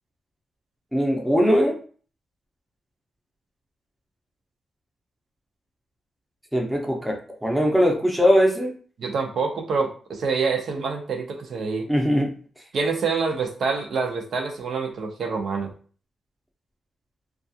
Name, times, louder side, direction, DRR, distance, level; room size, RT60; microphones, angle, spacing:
voice 1, 0.9-1.8 6.5-8.7 11.9-12.4, equal, 5° right, 1 dB, 0.6 m, -20 dB
voice 2, 9.0-11.9 12.7-15.7, right 4 dB, 65° right, 3 dB, 0.5 m, -26 dB
2.3 x 2.3 x 2.7 m, 0.41 s
cardioid pair, 110°, 0 cm